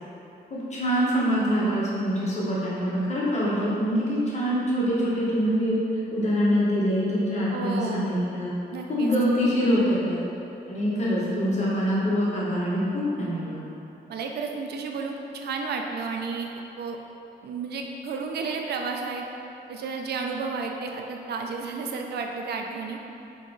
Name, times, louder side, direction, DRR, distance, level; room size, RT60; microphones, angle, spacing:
voice 1, 0.5-5.8 6.1-8.5 8.9-10.2 10.7-13.6, equal, 40° left, -7 dB, 1.1 m, -24 dB
voice 2, 7.5-8.2 8.7-9.1 14.1-16.5 16.8-17.0 17.4-19.2 19.7-23.0, right 4 dB, 70° right, 2 dB, 0.4 m, -32 dB
3.4 x 2.9 x 3.7 m, 2.9 s
cardioid pair, 100°, 17 cm